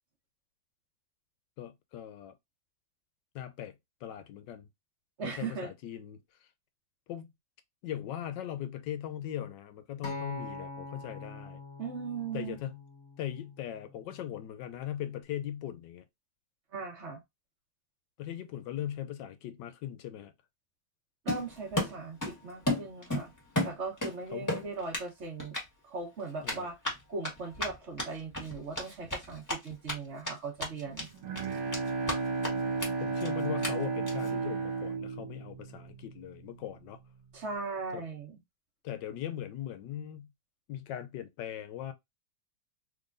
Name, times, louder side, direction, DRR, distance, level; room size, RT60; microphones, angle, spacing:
voice 1, 1.6-2.3 3.3-3.7 4.0-4.7 5.2-6.2 7.1-7.3 7.8-11.6 12.3-12.8 13.2-16.0 18.2-20.3 24.3-24.5 26.4-26.7 33.0-37.0 37.9-38.0 38.8-40.3 40.7-41.9, left 11 dB, 75° left, 1.2 m, -39 dB
voice 2, 5.2-5.7 11.8-12.6 16.7-17.2 21.2-23.3 23.6-25.6 25.8-26.8 27.1-31.1 37.3-38.4, right 4 dB, 40° right, 1.2 m, -38 dB
Acoustic guitar, 10.0-14.3 15.1-15.2, left 2 dB, 55° left, 0.9 m, -44 dB
Run, 21.3-22.4 22.7-24.1 24.5-25.1 25.4-25.6 26.4-29.9 30.2-30.3 30.6-31.1 31.4-32.2 32.4-32.5 32.8-32.9 33.2-33.3 33.6-33.7 34.1-34.3, left 1 dB, 10° left, 1.2 m, -33 dB
Bowed string instrument, 30.9-36.4, right 4 dB, 70° right, 1.7 m, -33 dB
3.6 x 3.2 x 2.5 m
omnidirectional pair, 2.1 m